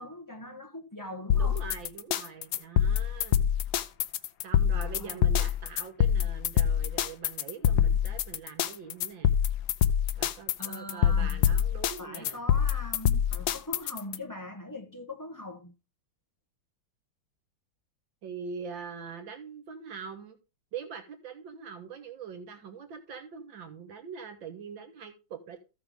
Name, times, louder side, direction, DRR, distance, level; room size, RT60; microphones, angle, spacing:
voice 1, 0.0-1.6 4.7-5.3 9.8-9.9 10.6-11.5 12.0-15.7, left 1 dB, 15° left, 1.0 m, -42 dB
sound 1, 1.3-14.2, left 9 dB, 70° left, 1.0 m, -25 dB
voice 2, 1.3-3.5 4.4-9.3 10.2-12.4 18.2-20.4 20.7-25.6, right 6 dB, 75° right, 1.9 m, -43 dB
14.5 x 5.9 x 3.6 m
omnidirectional pair, 2.1 m